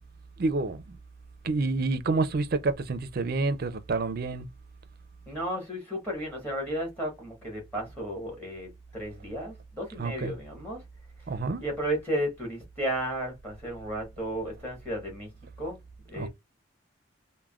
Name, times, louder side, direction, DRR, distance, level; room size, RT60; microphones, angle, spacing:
voice 1, 0.4-0.8 1.4-4.5 10.0-10.3 11.3-11.6 16.2-16.3, right 3 dB, 50° right, 0.4 m, -28 dB
voice 2, 5.3-10.8 11.6-15.3 15.6-15.8 16.1-16.3, right 1 dB, 10° left, 1.2 m, -33 dB
3.4 x 2.1 x 2.3 m
head